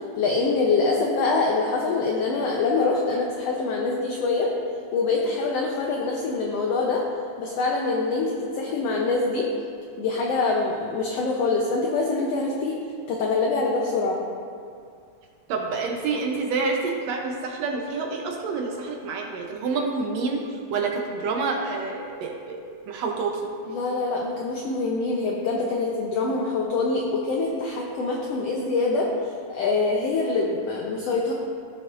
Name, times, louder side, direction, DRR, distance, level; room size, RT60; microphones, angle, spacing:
voice 1, 0.2-4.5 4.9-7.0 7.4-9.5 10.0-12.8 13.1-14.2 23.7-31.3, left 3 dB, 70° left, -1 dB, 1.6 m, -25 dB
voice 2, 15.5-22.6 22.9-23.4, right 4 dB, 70° right, 1 dB, 1.8 m, -28 dB
15.0 x 6.9 x 2.5 m, 2.3 s
omnidirectional pair, 3.4 m